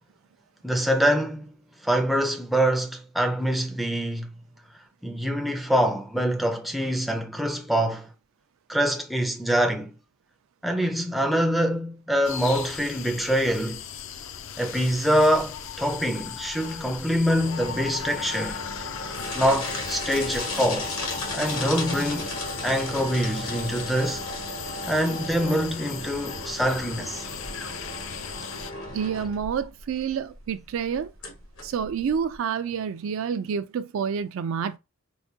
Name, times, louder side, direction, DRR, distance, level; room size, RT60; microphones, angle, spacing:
voice 1, 0.6-1.5 1.8-4.3 5.0-8.1 8.7-9.9 10.6-13.8 14.6-18.6 19.4-20.9 21.3-22.3 22.6-24.2 24.9-27.3, equal, ahead, 0.4 m, -25 dB
sound 1, 12.2-28.7, left 9 dB, 65° left, 0.4 m, -38 dB
sound 2, 15.3-32.4, left 2 dB, 80° left, 1.3 m, -35 dB
voice 2, 28.9-31.1 31.6-34.8, right 7 dB, 70° right, 0.3 m, -28 dB
4.7 x 2.2 x 2.7 m
head